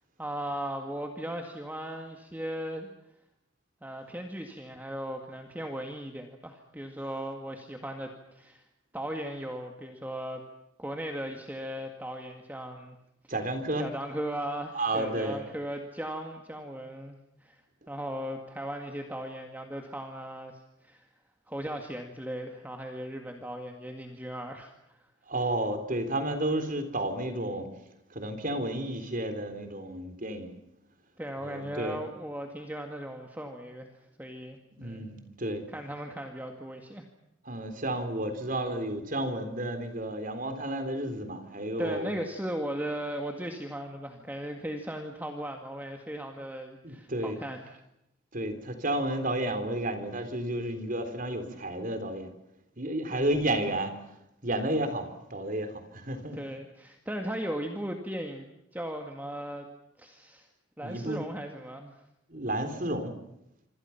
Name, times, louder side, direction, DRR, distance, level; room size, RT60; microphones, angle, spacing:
voice 1, 0.2-2.9 3.8-8.6 8.9-10.4 10.8-13.0 13.2-13.3 13.8-17.2 17.4-17.6 17.9-21.1 21.5-25.0 31.2-33.9 34.2-35.1 35.7-37.0 41.8-47.8 53.1-53.4 56.3-58.5 58.7-59.7 60.0-60.5 60.8-62.0, right 1 dB, 10° right, 3 dB, 2.0 m, -37 dB
voice 2, 13.3-13.8 14.7-15.4 25.3-27.7 28.2-30.5 31.4-32.0 34.8-35.6 37.5-42.1 46.8-47.4 48.3-52.3 52.8-53.9 54.4-56.4 60.8-61.2 62.3-63.1, right 1 dB, 40° right, 8 dB, 3.6 m, -31 dB
26.5 x 26.0 x 5.9 m, 0.85 s
head